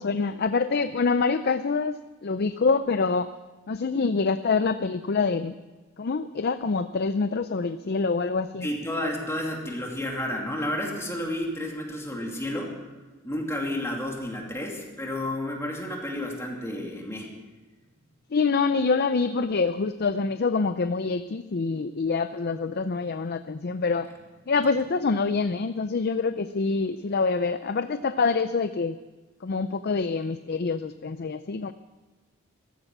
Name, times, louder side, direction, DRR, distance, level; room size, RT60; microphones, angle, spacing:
voice 1, 0.0-2.0 2.2-3.3 3.7-5.6 6.0-8.7 18.3-24.1 24.5-29.0 29.4-31.7, left 4 dB, 50° left, 11 dB, 0.5 m, -26 dB
voice 2, 8.6-12.7 13.2-17.3, left 1 dB, 15° left, -1 dB, 2.6 m, -31 dB
16.0 x 14.5 x 6.0 m, 1.3 s
head